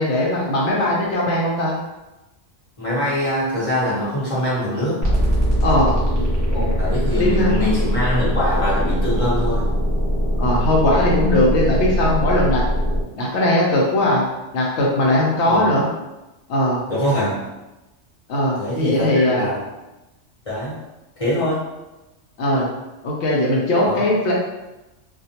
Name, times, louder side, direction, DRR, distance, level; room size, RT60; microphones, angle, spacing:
voice 1, 0.0-1.8 5.6-6.2 6.5-6.8 7.2-7.5 10.4-12.6 13.2-14.2 14.5-15.9 16.5-16.9 18.3-19.5 22.4-22.7 23.0-24.3, left 1 dB, 65° left, -3 dB, 0.8 m, -19 dB
voice 2, 2.8-5.0 6.8-9.7 15.5-15.7 16.9-17.5 18.6-19.6 20.4-20.8 21.2-21.6 23.9-24.0, left 1 dB, 30° left, -9 dB, 0.9 m, -23 dB
sound 1, 5.0-13.0, equal, 20° right, 0.5 m, -21 dB
2.2 x 2.2 x 2.7 m, 1.0 s
omnidirectional pair, 1.3 m